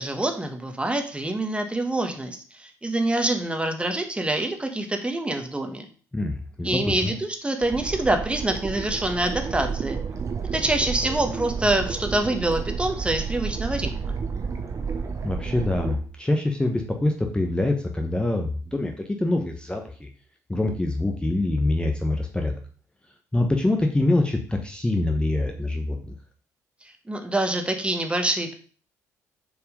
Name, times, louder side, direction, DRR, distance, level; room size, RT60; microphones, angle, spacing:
voice 1, 0.0-5.8 6.6-10.0 10.5-14.1 27.1-28.5, right 1 dB, 15° right, 5 dB, 1.4 m, -26 dB
voice 2, 6.1-7.1 15.2-18.9 19.2-20.1 20.5-22.5 23.3-26.1, left 2 dB, 10° left, 3 dB, 1.1 m, -25 dB
sound 1, 7.6-16.0, right 5 dB, 35° right, 1.3 m, -31 dB
6.9 x 4.6 x 5.2 m, 0.41 s
figure-of-eight pair, 45°, 9 cm